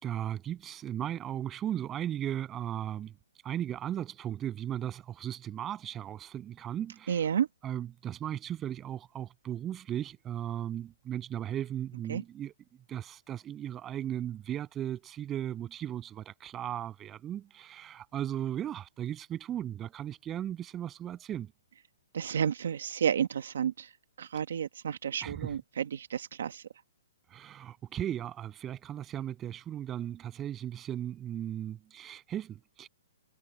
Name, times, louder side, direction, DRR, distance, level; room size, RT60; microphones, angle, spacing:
voice 1, 0.0-3.1 3.4-7.3 7.6-12.5 12.9-21.5 25.2-25.6 27.3-32.9, right 11 dB, 10° right, 8.0 m, -36 dB
voice 2, 7.1-7.5 12.1-12.2 22.1-23.9 24.2-26.6, right 8 dB, 60° right, 1.3 m, -31 dB
hypercardioid pair, 175°, 0 cm